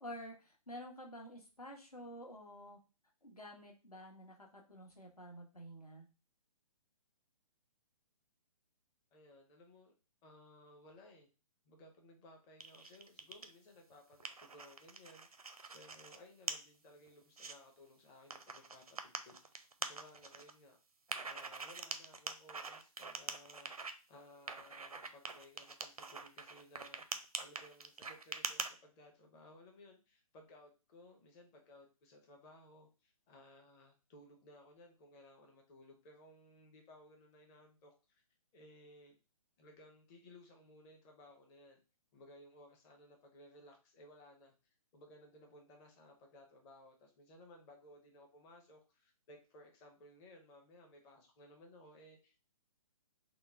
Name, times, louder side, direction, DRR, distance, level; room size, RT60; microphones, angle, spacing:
voice 1, 0.0-2.8 3.2-6.1, equal, 85° left, 1 dB, 1.1 m, -50 dB
voice 2, 9.1-9.9 10.2-11.3 11.6-15.3 15.7-20.8 21.2-38.2 38.5-39.2 39.6-41.8 42.1-44.5 44.9-52.6, left 1 dB, 15° left, 3 dB, 0.6 m, -60 dB
sound 1, 12.6-13.5 13.9-16.2 16.5-16.6 17.1-17.5 18.3-20.5 21.1-23.9 24.5-28.7, right 4 dB, 80° right, 0.5 m, -44 dB
3.7 x 2.1 x 3.5 m, 0.32 s
figure-of-eight pair, 130°, 19 cm